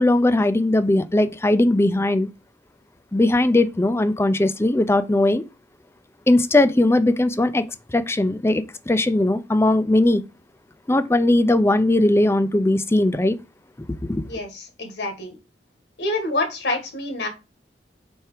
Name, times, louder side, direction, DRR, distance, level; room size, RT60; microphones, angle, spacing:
voice 1, 0.0-2.3 3.1-5.4 6.3-7.6 7.9-10.2 10.9-13.4 14.1-14.3, left 1 dB, 15° left, 0.4 m, -19 dB
voice 2, 14.3-15.4 16.0-17.3, left 2 dB, 70° left, 1.7 m, -27 dB
4.5 x 4.5 x 4.9 m
head